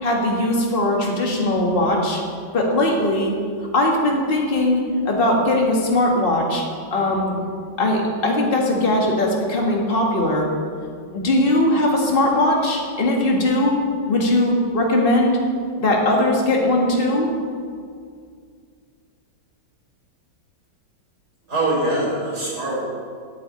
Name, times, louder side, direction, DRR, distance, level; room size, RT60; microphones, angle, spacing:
voice 1, 0.0-2.2 2.5-3.3 3.7-6.6 6.9-7.4 7.8-10.5 11.1-13.8 14.1-15.4 15.8-17.3, left 1 dB, 30° left, -1 dB, 1.9 m, -19 dB
voice 2, 21.5-22.8, right 2 dB, 50° right, -5 dB, 4.8 m, -23 dB
10.0 x 7.7 x 8.9 m, 2.2 s
omnidirectional pair, 2.1 m